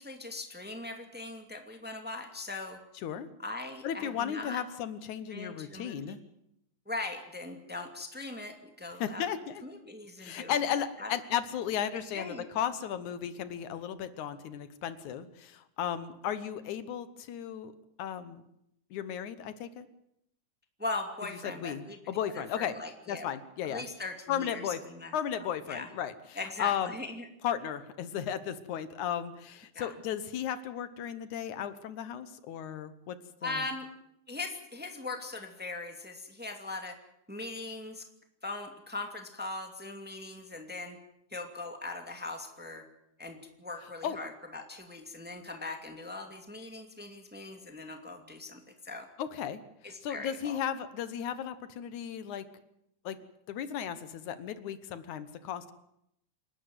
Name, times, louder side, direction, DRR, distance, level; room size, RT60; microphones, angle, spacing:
voice 1, 0.0-2.8 3.4-4.6 5.3-6.0 6.9-9.3 9.6-10.6 11.0-11.1 12.1-12.4 20.8-22.0 22.3-23.3 23.7-25.1 25.7-25.9 26.4-27.3 29.7-29.9 33.4-33.9 34.3-37.0 37.3-38.0 38.4-41.0 41.3-42.9 43.2-49.1 49.8-50.6, left 2 dB, 5° right, 4 dB, 2.0 m, -40 dB
voice 2, 2.9-3.3 3.8-6.2 9.0-9.6 10.2-17.7 18.0-18.4 18.9-19.9 21.4-22.7 23.1-23.8 24.3-24.8 25.1-27.0 27.4-33.6 43.8-44.2 49.2-52.5 53.0-53.2 53.5-55.7, left 9 dB, 75° left, 13 dB, 2.5 m, -35 dB
28.0 x 12.0 x 9.5 m, 0.79 s
omnidirectional pair, 3.5 m